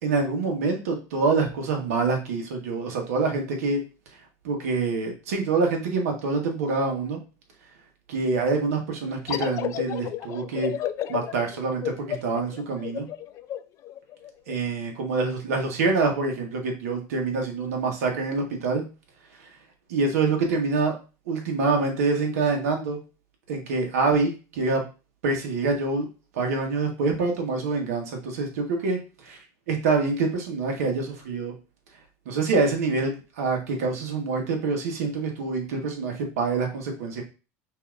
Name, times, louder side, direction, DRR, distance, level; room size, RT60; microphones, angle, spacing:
voice 1, 0.0-3.8 4.4-7.2 8.1-10.7 11.1-13.1 14.5-18.8 19.9-20.9 21.3-23.0 23.5-24.8 25.2-26.1 26.3-29.0 29.7-31.5 32.2-37.2, right 4 dB, 90° right, 2 dB, 1.2 m, -26 dB
sound 1, 9.3-14.6, left 11 dB, 40° left, 0.4 m, -32 dB
5.8 x 2.8 x 2.5 m, 0.32 s
supercardioid pair, 120°, 8 cm